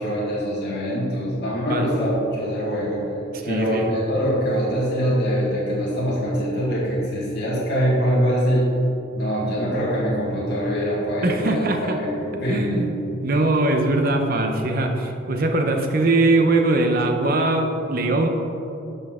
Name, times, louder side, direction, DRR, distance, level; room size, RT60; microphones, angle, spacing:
voice 1, 0.0-3.1 3.4-8.7 9.2-12.9, equal, 60° left, -7 dB, 1.9 m, -23 dB
voice 2, 3.3-3.9 11.2-12.0 12.5-18.3, right 2 dB, 50° right, 4 dB, 0.8 m, -21 dB
11.5 x 5.6 x 3.7 m, 2.8 s
head